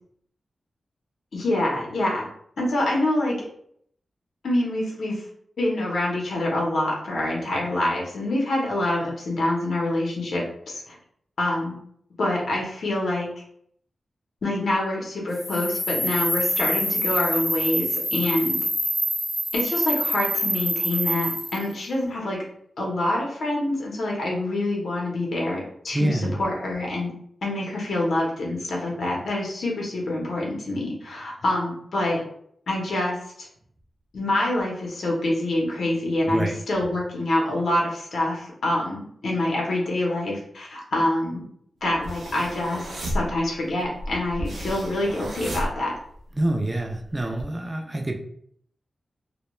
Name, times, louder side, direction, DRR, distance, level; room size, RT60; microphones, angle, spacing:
voice 1, 1.3-2.2 2.6-3.4 4.4-5.2 5.6-11.0 11.4-11.8 12.2-13.3 14.4-18.6 19.5-22.4 22.8-27.1 27.4-32.2 32.7-33.5 34.1-41.4 41.8-45.9, left 1 dB, 75° left, -2 dB, 0.7 m, -26 dB
sound 1, 15.3-21.6, equal, 30° left, 0.5 m, -26 dB
voice 2, 25.9-26.4 36.3-36.6 46.4-48.1, right 1 dB, 20° right, 2 dB, 0.4 m, -26 dB
sound 2, 41.9-46.4 46.8-47.4, equal, 85° right, 0.6 m, -32 dB
2.2 x 2.1 x 3.0 m, 0.66 s
wide cardioid pair, 115°, 0 cm